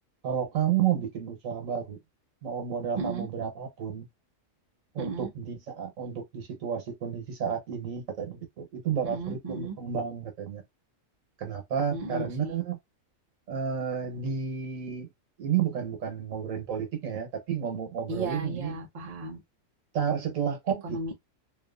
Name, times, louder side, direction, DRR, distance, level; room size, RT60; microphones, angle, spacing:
voice 1, 0.2-2.0 2.4-4.1 4.9-10.6 11.4-12.8 13.5-15.1 15.4-18.8 19.9-21.0, right 8 dB, 85° right, 1.3 m, -31 dB
voice 2, 3.0-3.3 5.0-5.3 9.0-9.8 11.9-12.6 18.1-19.4 20.8-21.1, right 3 dB, 35° right, 0.8 m, -34 dB
2.7 x 2.5 x 2.4 m
omnidirectional pair, 1.4 m